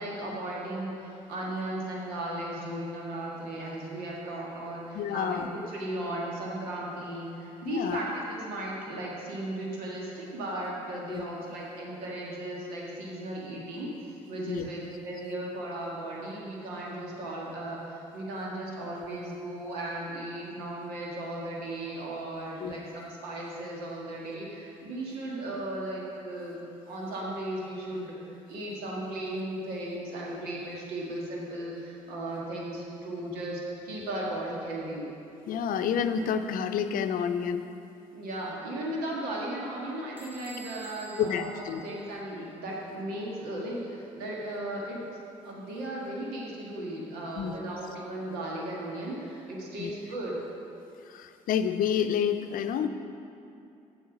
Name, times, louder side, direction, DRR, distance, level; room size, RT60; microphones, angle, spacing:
voice 1, 0.0-28.1 28.5-35.1 38.1-41.5 41.8-45.0 45.4-50.4, right 1 dB, 80° right, -3 dB, 1.7 m, -36 dB
voice 2, 4.9-5.5 7.6-8.0 11.1-11.2 14.5-14.7 22.6-22.8 35.5-37.7 41.2-41.8 47.4-47.6 49.8-49.9 51.0-52.9, left 8 dB, 65° left, 9 dB, 0.6 m, -29 dB
Bell / Door, 40.2-42.7, right 3 dB, 10° right, 1.3 m, -50 dB
7.9 x 7.4 x 5.9 m, 2.6 s
hypercardioid pair, 50°, 16 cm